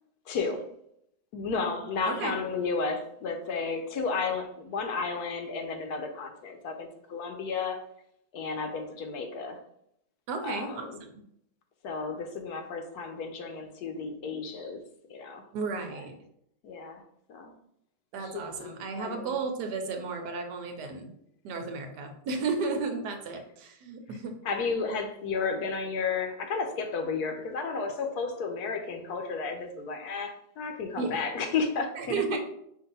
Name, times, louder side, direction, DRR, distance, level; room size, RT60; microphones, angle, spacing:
voice 1, 0.3-0.6 1.3-7.8 8.3-9.6 10.4-11.0 11.8-14.8 15.1-15.5 16.6-17.0 17.3-17.5 18.2-19.4 24.4-32.4, left 4 dB, 70° left, 5 dB, 1.1 m, -33 dB
voice 2, 2.1-2.4 10.3-11.2 15.5-16.1 18.1-21.1 21.4-24.4 31.0-31.2 32.0-32.4, right 4 dB, 80° right, 4 dB, 1.3 m, -33 dB
5.1 x 2.6 x 4.0 m, 0.75 s
omnidirectional pair, 1.8 m